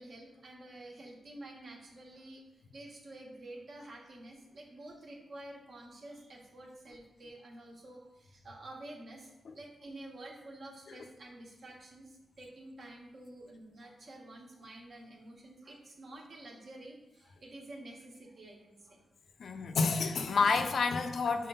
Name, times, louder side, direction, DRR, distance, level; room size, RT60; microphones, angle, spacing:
voice 1, 0.0-2.4 2.7-12.1 12.4-19.0, right 1 dB, 60° right, 0 dB, 1.2 m, -49 dB
voice 2, 19.4-21.5, left 4 dB, 70° left, 7 dB, 0.5 m, -29 dB
4.9 x 3.8 x 5.4 m, 0.99 s
wide cardioid pair, 105°, 0 cm